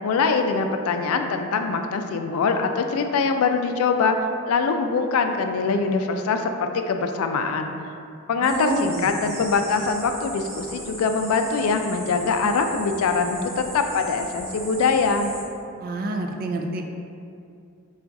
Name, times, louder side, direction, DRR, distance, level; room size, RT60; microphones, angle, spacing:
voice 1, 0.0-4.2 4.5-7.7 8.3-15.3, left 4 dB, 85° left, 6 dB, 0.3 m, -23 dB
sound 1, 8.4-15.4, right 1 dB, 10° right, 0.7 m, -38 dB
voice 2, 8.4-9.1 15.8-16.8, right 2 dB, 40° right, 3 dB, 0.3 m, -27 dB
3.9 x 2.4 x 4.6 m, 2.5 s
head